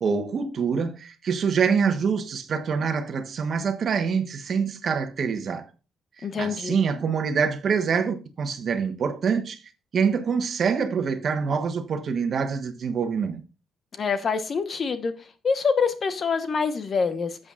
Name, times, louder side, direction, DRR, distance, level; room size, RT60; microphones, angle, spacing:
voice 1, 0.0-5.6 6.2-9.6 9.9-13.4, right 6 dB, 55° right, 1.2 m, -25 dB
voice 2, 6.2-6.8 13.9-15.1 15.4-17.4, left 5 dB, 45° left, 1.2 m, -25 dB
12.0 x 7.9 x 2.5 m
cardioid pair, 90°, 0 cm